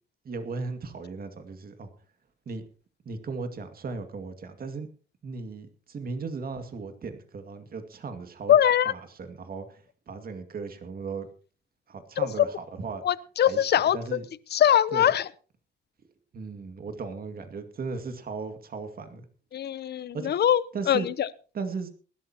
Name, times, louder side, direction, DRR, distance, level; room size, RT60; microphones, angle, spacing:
voice 1, 0.2-1.9 2.5-2.6 3.1-4.9 5.2-8.5 8.9-11.3 11.9-13.0 13.5-14.2 14.9-15.1 16.3-19.2 20.1-20.3 20.7-21.1 21.5-21.9, right 4 dB, 50° right, 2.2 m, -36 dB
voice 2, 8.5-8.9 12.4-12.5 13.0-14.0 14.5-15.3 19.5-20.6 20.9-21.3, left 10 dB, 55° left, 0.8 m, -22 dB
20.0 x 12.0 x 3.0 m
cardioid pair, 90°, 20 cm